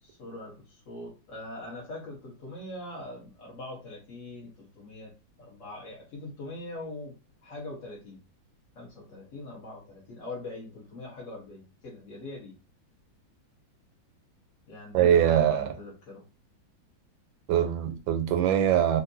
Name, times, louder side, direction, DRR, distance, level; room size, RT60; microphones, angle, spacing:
voice 1, 0.0-5.1 5.4-7.1 7.4-8.2 8.7-12.5 14.7-16.2, left 2 dB, 45° left, 1.3 m, -42 dB
voice 2, 14.9-15.7 17.5-19.0, right 10 dB, 85° right, 1.3 m, -22 dB
3.5 x 2.5 x 2.6 m
omnidirectional pair, 2.1 m